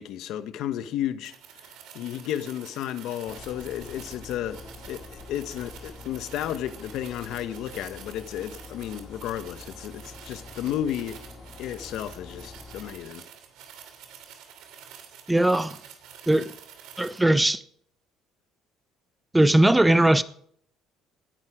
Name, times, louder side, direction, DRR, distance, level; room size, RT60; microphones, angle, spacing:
voice 1, 0.0-1.3 1.9-4.6 4.9-11.2 11.6-13.3, left 11 dB, 65° left, 1.2 m, -33 dB
sound 1, 1.2-17.2, right 8 dB, 75° right, 2.9 m, -48 dB
sound 2, 3.3-12.9, left 3 dB, 40° left, 3.2 m, -46 dB
voice 2, 15.3-15.8 16.3-16.5 17.0-17.6 19.3-20.2, right 1 dB, 10° right, 0.6 m, -19 dB
18.0 x 10.5 x 5.0 m
cardioid pair, 130°, 0 cm